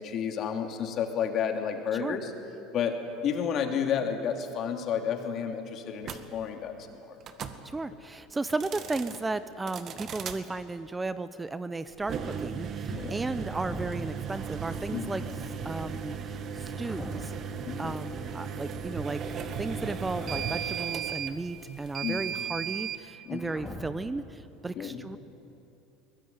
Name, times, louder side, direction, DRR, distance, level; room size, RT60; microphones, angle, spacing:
voice 1, 0.0-2.3 2.7-2.9 3.2-7.1 12.9-13.1 14.9-15.2 17.6-18.0 22.0-22.4 23.2-23.4 24.7-25.0, left 7 dB, 50° left, 4 dB, 3.1 m, -31 dB
sound 1, 6.0-6.2 7.2-7.6 8.5-9.2 9.7-10.4 12.0-23.0, right 7 dB, 45° right, 1.9 m, -36 dB
voice 2, 7.6-15.2 15.6-17.3 17.8-19.2 19.6-25.2, right 3 dB, 15° right, 13 dB, 0.9 m, -34 dB
sound 2, 13.4-14.3 16.7-17.6 20.0-21.0 23.4-24.2, left 1 dB, 5° left, 3.6 m, -42 dB
22.5 x 20.5 x 9.6 m, 2.9 s
hypercardioid pair, 85°, 0 cm